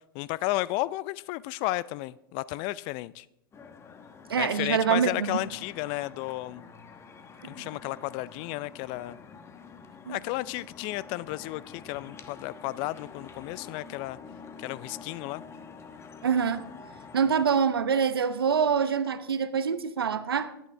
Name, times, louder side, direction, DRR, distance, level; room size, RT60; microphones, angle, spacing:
voice 1, 0.1-3.2 4.4-6.6 7.4-9.2 10.1-14.2 14.6-15.4, left 18 dB, 45° left, 19 dB, 0.4 m, -33 dB
sound 1, 3.5-17.5, left 5 dB, 20° left, 1.1 m, -47 dB
voice 2, 4.3-5.4 7.4-7.5 10.1-10.2 16.2-16.7 17.1-20.5, right 7 dB, 85° right, 13 dB, 0.8 m, -25 dB
23.0 x 9.1 x 3.4 m, 0.84 s
hypercardioid pair, 105°, 12 cm